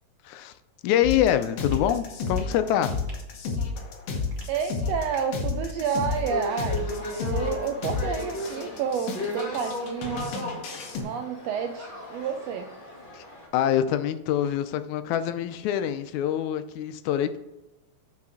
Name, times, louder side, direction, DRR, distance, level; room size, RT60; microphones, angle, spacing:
voice 1, 0.8-3.0 13.1-13.3 13.5-17.4, left 10 dB, 80° left, 10 dB, 1.9 m, -25 dB
sound 1, 1.0-11.0, left 4 dB, 65° left, 1.9 m, -32 dB
sound 2, 1.7-1.9 2.3-2.6 3.1-3.2 4.3-4.6 5.1-5.4 5.9-6.2 6.7-7.0 7.5-7.7 8.4-8.7 9.1-9.4, right 3 dB, 50° right, 2.2 m, -52 dB
voice 2, 4.5-10.2 10.9-12.7, right 7 dB, 85° right, 6 dB, 1.5 m, -30 dB
sound 3, 6.2-13.5, left 2 dB, 25° left, 1.0 m, -35 dB
8.3 x 4.9 x 3.6 m, 1.0 s
omnidirectional pair, 3.4 m